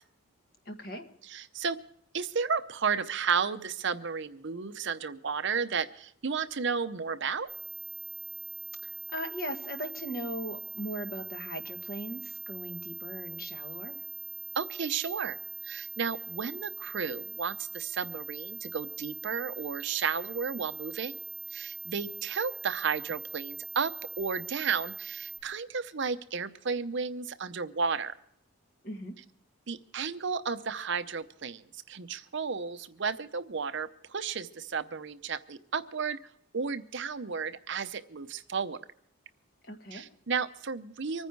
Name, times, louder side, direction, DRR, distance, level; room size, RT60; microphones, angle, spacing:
voice 1, 0.7-1.0 8.8-14.0 28.8-29.2 39.6-40.0, equal, 45° left, 5 dB, 1.6 m, -39 dB
voice 2, 1.3-1.8 2.1-7.5 14.5-15.4 15.6-21.2 21.5-28.1 29.7-36.2 36.5-38.8 39.9-41.3, right 5 dB, 55° right, 11 dB, 0.7 m, -33 dB
sound 1, 7.5-25.4, right 6 dB, 5° right, 1.4 m, -41 dB
24.5 x 9.8 x 4.6 m, 0.66 s
head